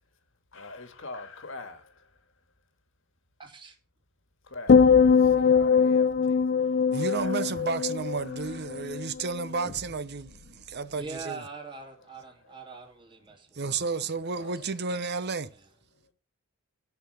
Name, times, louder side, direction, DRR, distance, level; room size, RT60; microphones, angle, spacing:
voice 1, 0.5-2.3 4.4-7.4 8.2-8.5 11.8-12.8 14.3-14.8 15.9-16.1, left 3 dB, 65° left, 1.8 m, -45 dB
voice 2, 3.4-3.8 11.0-13.6 14.4-14.5, right 4 dB, 25° right, 2.7 m, -42 dB
sound 1, 4.7-9.1 9.4-9.8, left 6 dB, 50° left, 0.4 m, -22 dB
voice 3, 6.9-11.4 13.5-15.5, right 4 dB, 55° right, 0.8 m, -32 dB
11.5 x 5.9 x 7.0 m
head